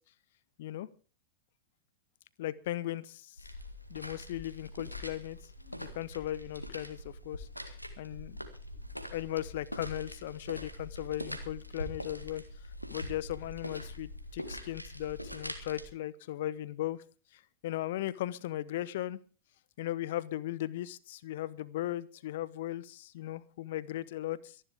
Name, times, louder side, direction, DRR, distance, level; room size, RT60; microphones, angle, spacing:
voice 1, 2.4-3.4 3.9-5.4 5.6-8.4 9.1-12.4 12.9-17.0 17.3-19.2 19.8-24.6, left 14 dB, 55° left, 21 dB, 0.9 m, -37 dB
sound 1, 3.4-15.9, left 1 dB, 90° left, 1.9 m, -43 dB
24.0 x 11.0 x 3.5 m, 0.36 s
figure-of-eight pair, 90°, 0 cm